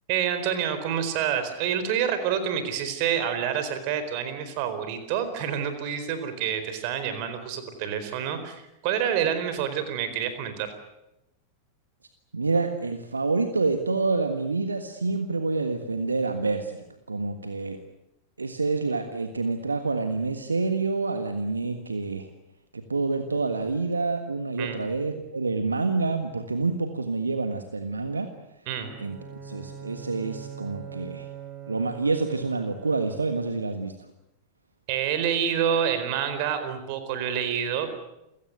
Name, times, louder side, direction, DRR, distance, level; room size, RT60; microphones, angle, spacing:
voice 1, 0.1-10.7 24.6-24.8 28.7-28.9 34.9-38.0, right 8 dB, 45° right, 10 dB, 4.4 m, -28 dB
voice 2, 12.3-17.8 18.4-22.3 22.7-28.3 29.0-29.2 29.4-31.3 31.7-33.9, right 3 dB, 80° right, 8 dB, 1.6 m, -27 dB
Bowed string instrument, 28.8-33.6, right 8 dB, 30° right, 4.3 m, -42 dB
29.0 x 17.0 x 9.3 m, 0.90 s
figure-of-eight pair, 90°, 0 cm